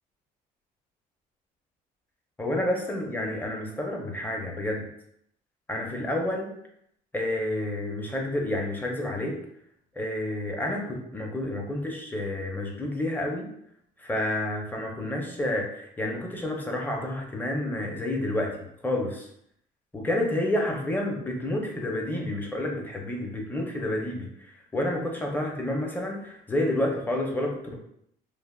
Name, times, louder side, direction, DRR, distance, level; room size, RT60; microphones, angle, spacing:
voice 1, 2.4-4.9 5.7-6.5 7.1-9.4 10.0-13.5 14.0-18.5 18.8-19.3 19.9-27.7, left 1 dB, 10° left, 0 dB, 0.6 m, -29 dB
3.2 x 2.0 x 2.3 m, 0.72 s
cardioid pair, 110°, 17 cm